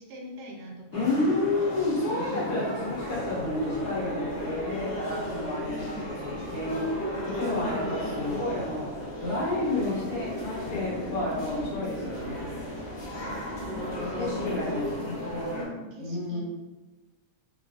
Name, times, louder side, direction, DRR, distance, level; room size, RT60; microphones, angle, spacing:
voice 1, 0.0-1.7 2.3-2.6 5.0-5.3 5.8-6.0 13.1-14.6 15.5-16.4, equal, 90° right, 0 dB, 1.3 m, -44 dB
voice 2, 0.9-6.0 6.5-6.9 7.2-8.9 9.2-12.5 14.2-15.0 16.0-16.4, left 2 dB, 75° left, -6 dB, 1.5 m, -30 dB
sound 1, 0.9-15.6, left 1 dB, 45° left, 0.9 m, -35 dB
sound 2, 2.9-14.7, right 2 dB, 55° right, 0.7 m, -47 dB
3.8 x 3.2 x 2.5 m, 1.1 s
omnidirectional pair, 1.7 m